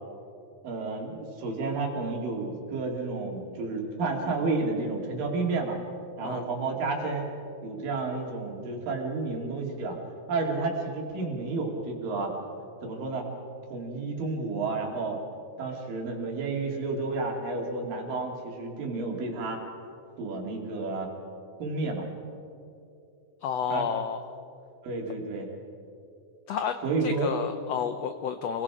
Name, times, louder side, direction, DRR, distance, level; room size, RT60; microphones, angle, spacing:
voice 1, 0.6-5.8 6.2-7.3 7.6-10.0 10.3-12.3 12.8-13.3 13.7-15.2 15.6-19.6 20.2-21.1 21.6-22.1 23.7-23.9 24.8-25.5 26.8-27.3, right 3 dB, 75° right, 1 dB, 4.3 m, -31 dB
voice 2, 23.4-24.2 26.5-26.8 27.0-28.6, left 8 dB, 90° left, 8 dB, 1.4 m, -30 dB
29.0 x 22.5 x 4.9 m, 2.6 s
omnidirectional pair, 4.0 m